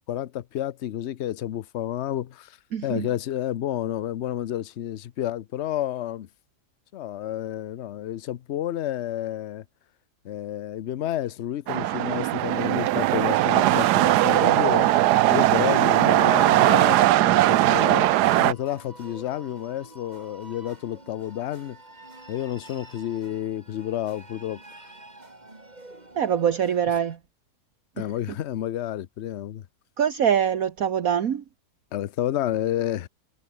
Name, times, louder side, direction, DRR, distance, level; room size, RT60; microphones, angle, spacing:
voice 1, 0.1-2.6 2.8-6.3 6.9-9.6 10.2-14.9 15.3-18.1 18.4-21.8 22.3-24.6 28.0-29.7 31.9-33.1, left 12 dB, 55° left, 0.8 m, -30 dB
voice 2, 2.7-3.1 15.8-16.1 26.1-27.2 28.0-28.1 30.0-31.4, right 8 dB, 60° right, 1.6 m, -24 dB
sound 1, 11.7-18.5, right 15 dB, 80° right, 1.2 m, -19 dB
sound 2, 18.3-27.2, right 2 dB, 25° right, 3.5 m, -48 dB
omnidirectional pair, 1.7 m